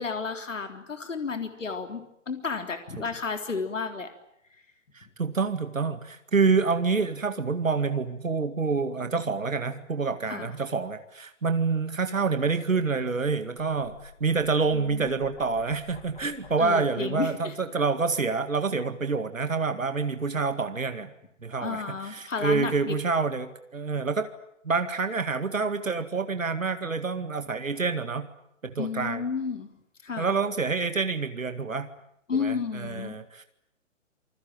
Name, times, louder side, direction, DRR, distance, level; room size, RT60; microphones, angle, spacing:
voice 1, 0.0-4.1 10.3-10.5 14.7-15.1 16.6-17.6 21.6-23.0 28.8-29.7 30.0-30.3 32.3-33.1, left 5 dB, 70° left, 7 dB, 3.7 m, -32 dB
voice 2, 4.9-21.1 21.4-24.3 24.6-28.3 28.6-29.2 30.2-31.9 32.4-33.4, right 4 dB, 80° right, 9 dB, 2.1 m, -27 dB
sound 1, 13.7-16.8, left 7 dB, 45° left, 4.3 m, -50 dB
27.5 x 21.0 x 9.1 m, 0.78 s
figure-of-eight pair, 135°, 39 cm